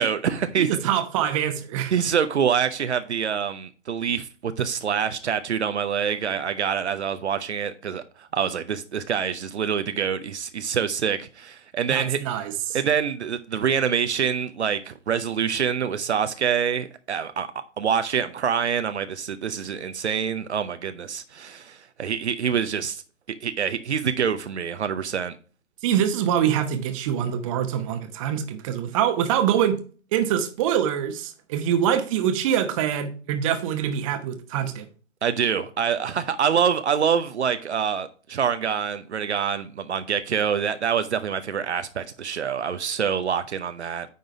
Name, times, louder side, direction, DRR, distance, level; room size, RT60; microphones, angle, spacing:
voice 1, 0.0-0.7 1.9-12.2 12.7-17.5 17.8-23.0 23.4-25.3 35.2-44.1, right 7 dB, 65° right, 0.8 m, -26 dB
voice 2, 0.6-1.9 11.9-12.8 25.8-29.8 30.1-34.9, right 9 dB, 25° right, 1.0 m, -24 dB
9.4 x 3.9 x 4.7 m
figure-of-eight pair, 130°, 36 cm